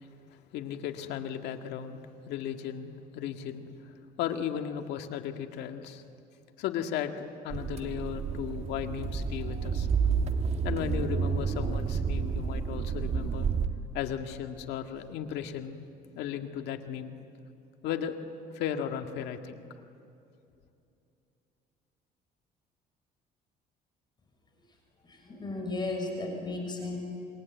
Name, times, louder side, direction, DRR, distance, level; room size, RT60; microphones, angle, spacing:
voice 1, 0.0-6.0 6.6-9.9 10.6-13.5 13.9-17.1 17.8-18.2 18.5-19.6, left 9 dB, 85° left, 6 dB, 2.0 m, -36 dB
sound 1, 7.5-13.7, right 6 dB, 40° right, 1.8 m, -30 dB
voice 2, 25.1-27.0, left 2 dB, 25° left, 2 dB, 6.3 m, -34 dB
27.0 x 23.0 x 9.3 m, 2.7 s
cardioid pair, 110°, 17 cm